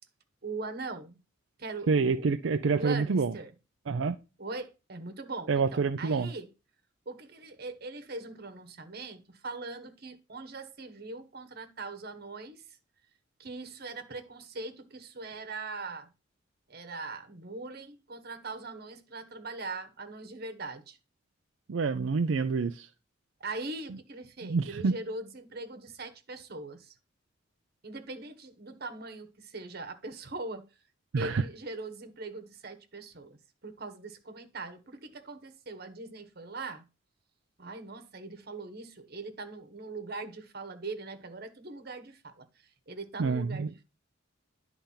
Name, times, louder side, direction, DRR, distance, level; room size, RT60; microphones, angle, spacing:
voice 1, 0.4-1.2 1.6-2.3 2.7-3.5 4.4-6.5 7.1-12.6 13.4-16.1 16.7-21.0 23.4-26.9 27.8-30.7 31.2-33.4 33.6-36.9 37.6-42.5 42.9-43.8, right 3 dB, 55° right, 1.3 m, -41 dB
voice 2, 1.9-3.3 3.9-4.2 5.5-6.3 21.7-22.9 24.4-24.9 31.1-31.4 43.2-43.7, right 4 dB, 85° right, 0.5 m, -27 dB
10.5 x 3.5 x 5.6 m
head